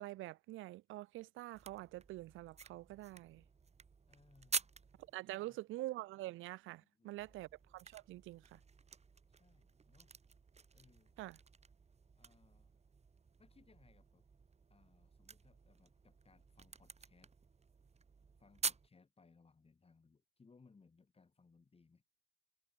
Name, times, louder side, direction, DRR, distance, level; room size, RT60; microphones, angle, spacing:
voice 1, 0.0-3.4 5.1-8.6 11.2-11.4, right 17 dB, 90° right, 0.7 m, -46 dB
sound 1, 1.5-5.1 7.2-18.9, right 5 dB, 35° right, 2.4 m, -48 dB
voice 2, 4.1-4.7 5.3-5.7 6.8-7.4 9.3-10.1 10.7-11.2 12.2-12.7 13.4-14.3 14.7-17.3 18.4-22.0, left 4 dB, 30° left, 5.7 m, -68 dB
cardioid pair, 90°, 20 cm